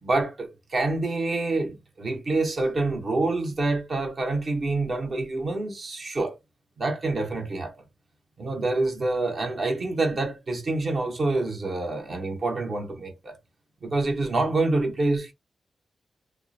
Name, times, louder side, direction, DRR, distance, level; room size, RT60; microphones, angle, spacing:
voice 1, 0.0-6.4 6.8-7.7 8.4-13.4 13.8-15.3, right 2 dB, 50° right, 0.9 m, -27 dB
2.5 x 2.0 x 2.5 m
cardioid pair, 85°, 0 cm